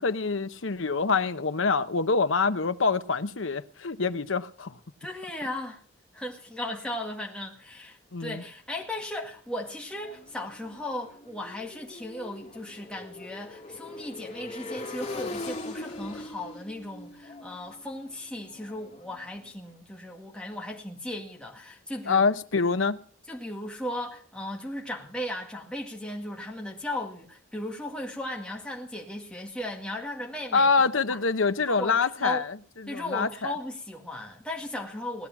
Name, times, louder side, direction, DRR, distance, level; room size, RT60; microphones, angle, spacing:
voice 1, 0.0-4.8 8.1-8.4 22.1-23.0 30.5-33.5, left 4 dB, 70° left, 0.9 m, -26 dB
voice 2, 5.0-5.8 6.1-22.3 23.3-30.7 31.1-31.2 31.7-32.4 32.9-35.3, left 1 dB, 5° left, 2.0 m, -36 dB
Motorcycle, 9.6-19.5, left 2 dB, 35° left, 2.9 m, -41 dB
18.5 x 11.5 x 5.9 m
head